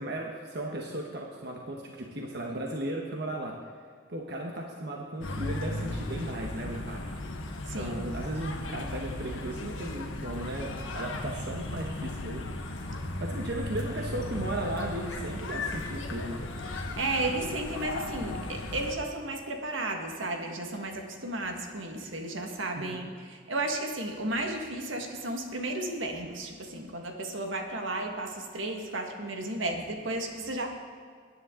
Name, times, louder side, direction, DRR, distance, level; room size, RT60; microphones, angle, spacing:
voice 1, 0.0-3.6 4.1-7.1 7.7-12.4 12.8-12.9 13.2-16.4 22.8-23.1, right 1 dB, 55° right, 0 dB, 1.2 m, -36 dB
sound 1, 5.2-19.0, left 2 dB, 75° left, 1.4 m, -36 dB
voice 2, 17.0-30.7, right 2 dB, 75° right, 3 dB, 1.7 m, -33 dB
20.0 x 10.5 x 3.8 m, 2.1 s
head